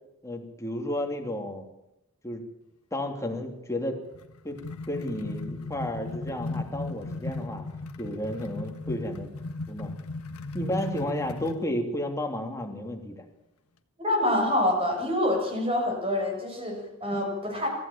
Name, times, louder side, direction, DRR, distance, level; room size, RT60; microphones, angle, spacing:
voice 1, 0.2-1.6 2.2-2.4 2.9-4.0 4.4-4.6 4.9-7.6 8.0-9.3 9.7-9.9 10.5-13.2, left 1 dB, 15° left, 2 dB, 3.2 m, -32 dB
sound 1, 4.1-11.7, left 2 dB, 80° left, 1.5 m, -36 dB
voice 2, 14.0-17.7, left 1 dB, 25° right, 2 dB, 7.2 m, -26 dB
24.0 x 15.0 x 8.8 m, 0.85 s
head